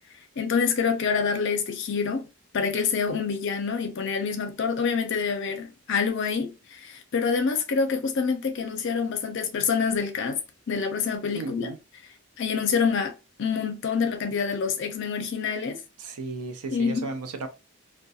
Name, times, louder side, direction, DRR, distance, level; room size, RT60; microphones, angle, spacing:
voice 1, 0.4-2.3 2.5-10.4 10.7-11.7 12.4-15.8 16.7-17.1, left 5 dB, 55° left, 0.4 m, -26 dB
voice 2, 11.3-11.8 16.0-17.5, right 3 dB, 85° right, 0.5 m, -35 dB
2.3 x 2.2 x 2.6 m
head